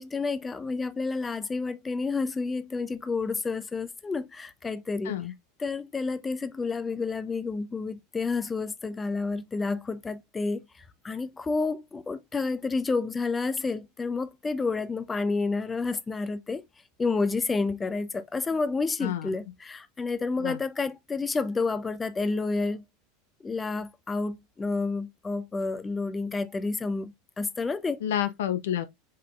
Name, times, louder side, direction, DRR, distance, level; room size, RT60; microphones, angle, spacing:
voice 1, 0.0-5.1 5.6-16.6 17.0-22.8 23.4-28.0, left 4 dB, 20° left, 0.6 m, -30 dB
voice 2, 28.0-28.9, left 11 dB, 70° left, 0.4 m, -29 dB
5.2 x 4.0 x 2.3 m
figure-of-eight pair, 80°, 0 cm